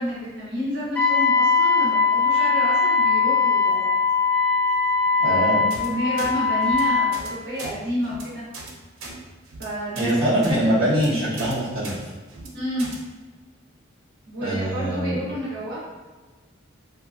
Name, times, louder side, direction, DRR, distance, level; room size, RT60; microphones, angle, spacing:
voice 1, 0.0-3.9 5.2-8.4 9.6-10.7 12.5-12.9 14.3-15.8, equal, 55° right, -9 dB, 0.8 m, -30 dB
Wind instrument woodwind instrument, 1.0-7.2, left 5 dB, 5° left, 0.4 m, -20 dB
voice 2, 5.2-5.7 10.0-11.9 14.4-15.2, right 1 dB, 25° right, -11 dB, 1.0 m, -23 dB
sound 1, 5.7-5.9 6.2-6.3 6.6-6.8 7.1-7.3 7.6-7.7 8.0-8.2 8.5-8.7 9.0-9.1 9.5-9.6 9.9-10.1 10.4-10.6 10.9-11.1 11.4-11.5 11.8-12.0 12.3-12.5 12.8-13.0, right 3 dB, 90° right, 0.5 m, -37 dB
2.4 x 2.2 x 3.7 m, 1.3 s
head